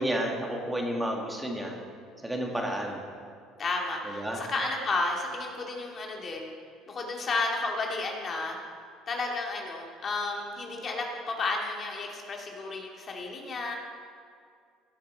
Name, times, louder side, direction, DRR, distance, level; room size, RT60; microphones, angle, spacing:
voice 1, 0.0-1.7 2.2-3.0 4.2-4.4, right 1 dB, 10° right, 0 dB, 2.1 m, -31 dB
voice 2, 2.5-2.9 3.6-6.5 6.9-8.6 9.1-13.7, left 3 dB, 40° left, 0 dB, 2.2 m, -32 dB
17.5 x 8.5 x 4.6 m, 2.3 s
supercardioid pair, 95°, 0 cm